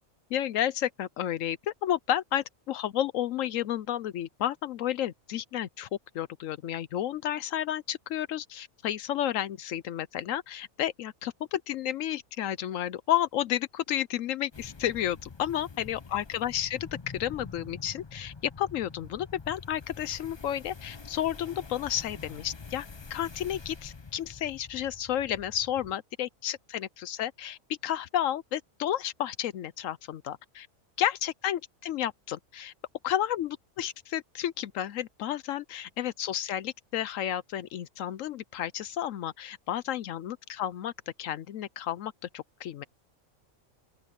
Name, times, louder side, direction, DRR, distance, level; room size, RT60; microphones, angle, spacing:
voice 1, 0.3-5.9 6.1-16.9 17.1-30.7 31.0-32.7 33.0-40.9 41.2-42.8, left 11 dB, 75° left, 1.0 m, -32 dB
sound 1, 14.5-26.0, left 4 dB, 25° left, 0.6 m, -46 dB
open air
omnidirectional pair, 1.4 m